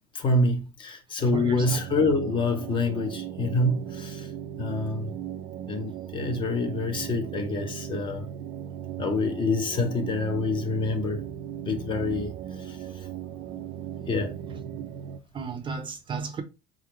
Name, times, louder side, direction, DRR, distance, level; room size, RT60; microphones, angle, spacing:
voice 1, 0.1-4.3 4.6-5.1 5.7-8.3 9.0-11.2 11.6-12.8 14.1-14.3 14.6-14.7, left 2 dB, 30° left, 0.9 m, -27 dB
sound 1, 1.2-15.2, right 10 dB, 70° right, 0.6 m, -37 dB
voice 2, 1.3-1.8 15.3-16.4, right 5 dB, 30° right, 0.7 m, -33 dB
4.2 x 3.7 x 3.1 m
cardioid pair, 140°, 18 cm